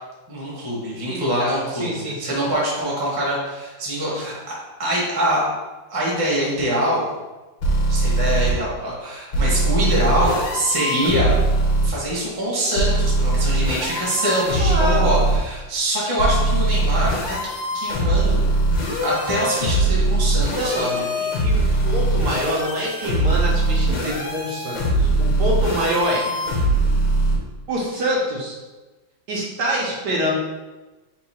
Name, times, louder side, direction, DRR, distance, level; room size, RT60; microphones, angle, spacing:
voice 1, 0.3-5.4 5.9-7.1 7.9-11.4 11.8-17.4 17.7-18.4 19.0-21.0, right 1 dB, 15° right, -5 dB, 0.8 m, -24 dB
voice 2, 1.1-2.4 9.8-9.9 14.6-15.1 20.5-26.3 27.7-28.6 29.3-30.3, equal, 65° right, -3 dB, 1.3 m, -26 dB
sound 1, 7.6-8.5 9.3-11.9 12.8-15.4 16.2-27.4, right 2 dB, 75° left, 1.7 m, -21 dB
3.8 x 2.7 x 4.2 m, 1.2 s
omnidirectional pair, 2.1 m